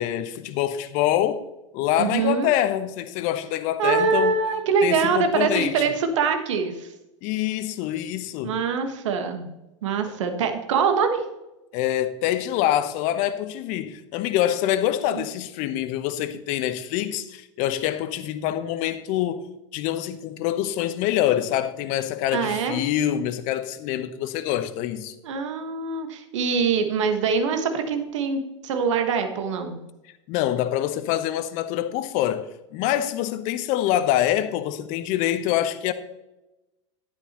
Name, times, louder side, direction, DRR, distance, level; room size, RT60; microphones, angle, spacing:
voice 1, 0.0-1.5 1.7-4.4 4.8-5.9 7.2-8.6 11.7-25.1 30.3-35.9, left 12 dB, 50° left, 1.0 m, -25 dB
voice 2, 2.0-2.5 3.8-6.9 8.4-9.5 9.8-11.2 15.1-15.3 22.3-22.8 25.2-29.8, right 5 dB, 70° right, 1.5 m, -24 dB
11.5 x 10.0 x 3.0 m
hypercardioid pair, 90°, 16 cm